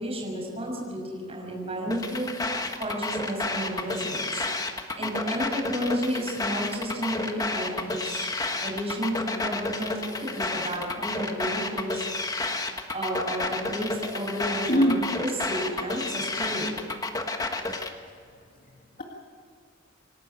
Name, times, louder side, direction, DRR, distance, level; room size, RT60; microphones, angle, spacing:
voice 1, 0.0-4.4 5.0-8.3 8.6-12.0 12.9-16.9, equal, 30° right, -2 dB, 6.3 m, -32 dB
sound 1, 1.9-17.9, left 3 dB, 20° left, 1.4 m, -31 dB
voice 2, 14.7-15.1 17.5-17.7 18.0-18.2 18.6-19.0, equal, 45° left, -1 dB, 2.0 m, -26 dB
27.0 x 12.0 x 9.0 m, 2.1 s
head